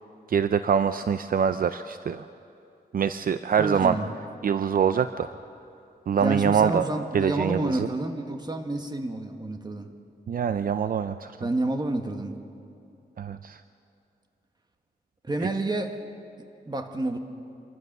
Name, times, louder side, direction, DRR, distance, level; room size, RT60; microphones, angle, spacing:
voice 1, 0.3-2.3 2.9-4.0 4.4-5.3 6.1-6.9 7.1-7.9 10.3-11.5 13.2-13.6, right 7 dB, 60° right, 11 dB, 0.5 m, -24 dB
voice 2, 3.6-4.1 6.2-9.9 11.4-12.4 15.2-15.9 16.4-17.2, right 2 dB, 25° right, 5 dB, 1.6 m, -29 dB
26.0 x 15.0 x 6.7 m, 2.6 s
wide cardioid pair, 95°, 17 cm